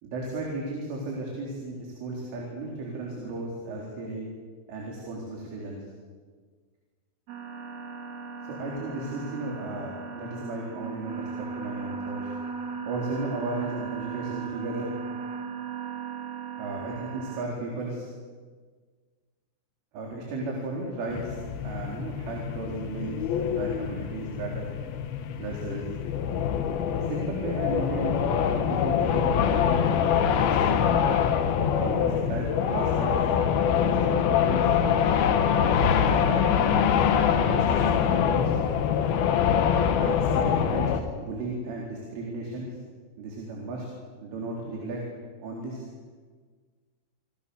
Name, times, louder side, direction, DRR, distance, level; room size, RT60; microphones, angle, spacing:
voice 1, 0.0-4.3 4.7-5.8 8.5-12.2 12.9-14.9 16.6-18.1 19.9-21.4 21.6-24.7 25.4-25.9 27.1-29.8 30.2-31.1 31.8-33.1 33.6-34.7 35.5-36.9 37.3-38.5 40.0-40.9 41.2-42.7 43.2-43.9 44.2-45.0 45.4-45.8, right 2 dB, 85° right, -2 dB, 6.5 m, -35 dB
sound 1, 7.3-17.5, right 6 dB, 45° right, 2.6 m, -37 dB
sound 2, 21.1-41.0, left 8 dB, 65° left, 2.9 m, -24 dB
28.0 x 25.5 x 7.0 m, 1.5 s
omnidirectional pair, 5.5 m